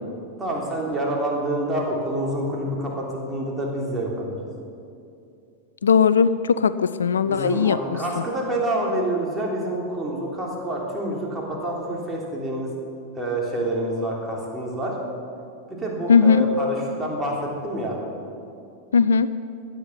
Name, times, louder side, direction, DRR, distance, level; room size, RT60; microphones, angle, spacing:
voice 1, 0.4-4.4 7.2-12.7 13.1-14.9 15.7-18.0, right 1 dB, 10° right, -3 dB, 3.3 m, -27 dB
voice 2, 5.8-7.8 16.1-16.5 18.9-19.3, left 6 dB, 70° left, 15 dB, 0.3 m, -18 dB
16.5 x 10.5 x 5.7 m, 2.6 s
figure-of-eight pair, 90°, 0 cm